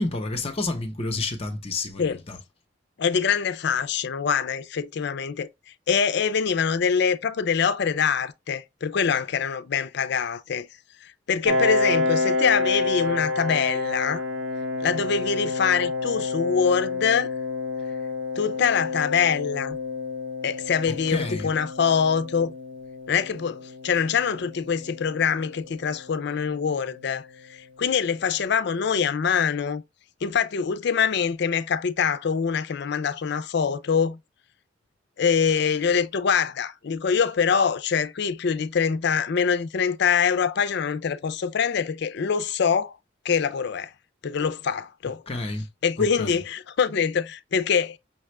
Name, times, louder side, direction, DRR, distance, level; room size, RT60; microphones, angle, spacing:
voice 1, 0.0-2.4 21.1-21.5 45.3-45.7 46.0-46.4, left 2 dB, 30° left, 0.8 m, -29 dB
voice 2, 3.0-5.5 5.9-10.7 11.0-14.2 14.8-17.3 18.4-19.8 20.4-22.5 23.1-29.8 30.2-34.2 35.2-43.0 43.2-43.9 44.2-45.2 45.8-48.0, left 6 dB, 60° left, 0.4 m, -24 dB
Piano, 11.4-26.8, left 3 dB, 75° right, 1.0 m, -29 dB
5.9 x 2.4 x 3.1 m
head